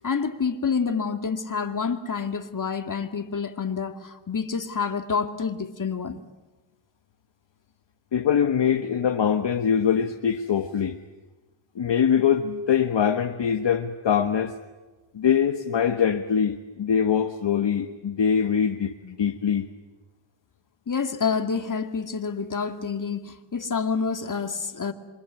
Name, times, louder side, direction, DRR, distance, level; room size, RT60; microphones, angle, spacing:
voice 1, 0.0-6.2 20.9-24.9, left 5 dB, 40° left, 2.3 m, -28 dB
voice 2, 8.1-11.0 11.7-14.6 15.1-19.7, left 7 dB, 60° left, 1.5 m, -23 dB
27.5 x 24.5 x 8.4 m
cardioid pair, 75°, 50 cm